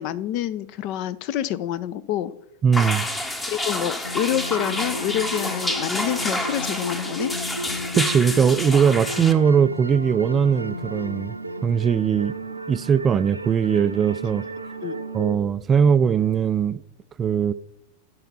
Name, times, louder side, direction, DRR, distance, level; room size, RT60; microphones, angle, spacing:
voice 1, 0.0-2.3 3.5-7.3 14.8-14.9, left 11 dB, 45° left, 0.5 m, -27 dB
voice 2, 2.6-3.0 8.0-11.3 11.6-12.3 12.7-14.4 15.1-16.8 17.2-17.5, right 7 dB, 25° right, 0.3 m, -20 dB
sound 1, 2.7-9.3, left 1 dB, 10° left, 1.0 m, -28 dB
sound 2, 4.0-15.4, right 1 dB, 85° right, 0.7 m, -33 dB
12.5 x 5.5 x 5.5 m
figure-of-eight pair, 90°, 0 cm